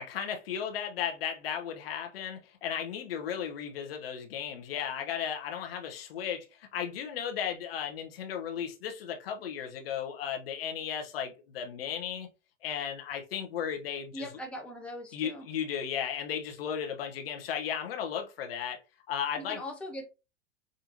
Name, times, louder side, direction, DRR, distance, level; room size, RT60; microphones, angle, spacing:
voice 1, 0.0-12.3 12.6-14.3 15.1-18.8 19.1-19.6, left 8 dB, 55° left, 0.9 m, -35 dB
voice 2, 14.1-15.5 19.4-20.1, left 1 dB, 5° left, 0.8 m, -40 dB
5.0 x 2.6 x 2.6 m
figure-of-eight pair, 95°, 36 cm